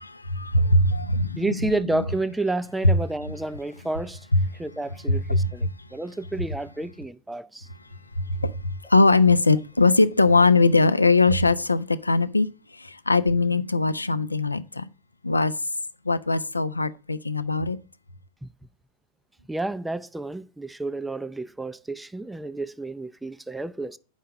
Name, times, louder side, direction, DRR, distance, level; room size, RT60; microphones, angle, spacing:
voice 1, 0.0-2.1 2.8-3.4 4.3-4.5 5.1-5.9 6.4-6.5 8.2-14.9 15.2-15.5 16.0-17.8, left 3 dB, 80° left, 0.5 m, -21 dB
voice 2, 1.4-4.2 4.6-7.7 18.4-18.5 19.5-24.0, right 2 dB, 5° right, 0.5 m, -30 dB
8.1 x 5.6 x 7.6 m
figure-of-eight pair, 90°, 0 cm